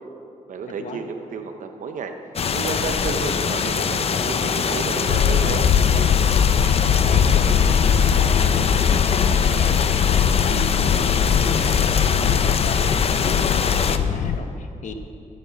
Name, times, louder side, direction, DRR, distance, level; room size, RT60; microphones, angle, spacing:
voice 1, 0.5-2.1 2.5-5.7, right 5 dB, 70° right, 5 dB, 0.9 m, -31 dB
sound 1, 2.4-14.0, left 6 dB, 45° left, 0.6 m, -23 dB
sound 2, 5.1-14.4, left 8 dB, 80° left, 0.6 m, -20 dB
voice 2, 6.9-11.8 12.2-12.9 13.1-14.9, left 4 dB, 65° left, 6 dB, 1.0 m, -34 dB
13.5 x 7.6 x 7.0 m, 2.6 s
cardioid pair, 100°, 14 cm